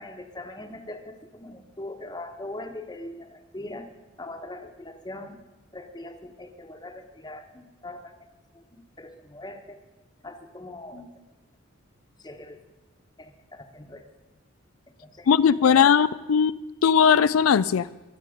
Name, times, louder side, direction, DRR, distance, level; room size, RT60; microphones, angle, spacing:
voice 1, 0.0-3.9 4.2-5.4 5.7-8.1 8.5-8.6 9.0-9.8 10.2-11.1 12.2-12.6 13.2-14.0 15.0-15.9, left 1 dB, 20° left, 6 dB, 1.2 m, -41 dB
voice 2, 15.3-16.5 16.8-17.9, left 7 dB, 85° left, 16 dB, 0.4 m, -19 dB
23.5 x 8.3 x 5.2 m, 1.1 s
head